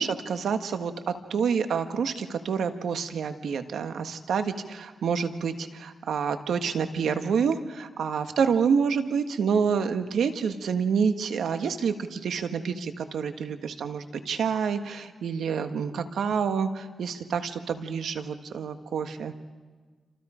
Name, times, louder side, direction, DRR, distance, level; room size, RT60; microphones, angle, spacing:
voice 1, 0.0-19.3, right 6 dB, 80° right, 8 dB, 1.5 m, -28 dB
28.0 x 26.5 x 5.1 m, 1.4 s
cardioid pair, 70°, 0 cm